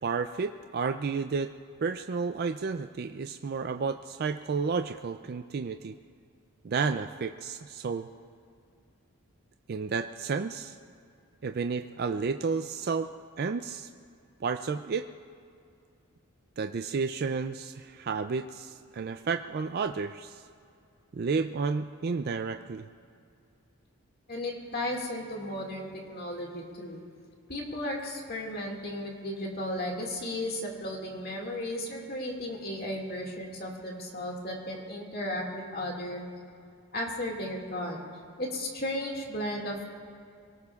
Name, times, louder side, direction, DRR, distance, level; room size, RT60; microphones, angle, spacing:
voice 1, 0.0-1.5 1.8-5.9 6.6-8.1 9.7-10.8 11.4-13.1 13.4-13.9 14.4-15.1 16.6-20.4 21.1-22.8, right 5 dB, 45° right, 8 dB, 0.3 m, -31 dB
voice 2, 24.3-27.0 27.5-36.2 36.9-38.0 38.4-39.8, left 1 dB, 45° left, 0 dB, 2.1 m, -35 dB
24.0 x 18.0 x 2.4 m, 2.4 s
head